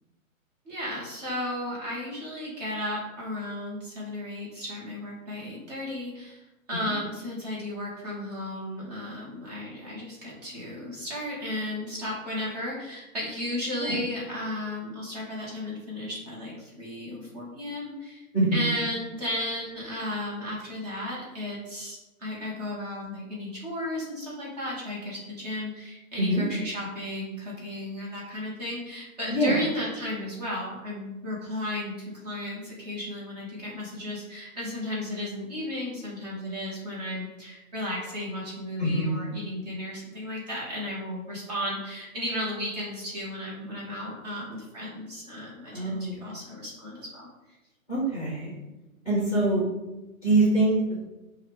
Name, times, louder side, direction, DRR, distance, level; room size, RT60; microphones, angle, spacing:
voice 1, 0.6-6.4 6.7-18.2 18.5-47.3, left 1 dB, 30° right, -5 dB, 1.1 m, -34 dB
voice 2, 29.3-29.6 38.8-39.3 45.7-46.1 47.9-48.5 49.0-49.6 50.2-51.0, right 2 dB, 10° right, -7 dB, 1.2 m, -24 dB
5.4 x 2.4 x 3.2 m, 1.0 s
hypercardioid pair, 170°, 42 cm